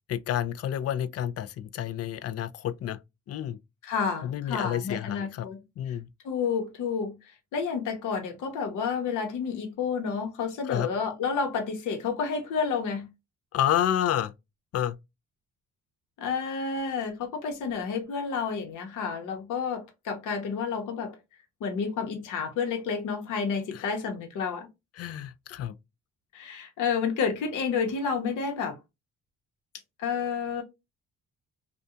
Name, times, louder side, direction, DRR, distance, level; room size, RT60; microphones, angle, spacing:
voice 1, 0.1-3.0 3.3-3.6 4.2-5.5 5.8-6.1 10.7-10.9 13.5-14.3 14.7-15.0 23.7-23.9 25.0-25.8, left 11 dB, 55° left, 0.4 m, -29 dB
voice 2, 3.8-5.6 5.9-6.0 6.2-13.1 16.2-21.1 21.6-24.7 25.0-25.1 26.3-28.8 30.0-30.6, left 6 dB, 85° left, 0.9 m, -30 dB
2.7 x 2.3 x 2.3 m
cardioid pair, 90°, 30 cm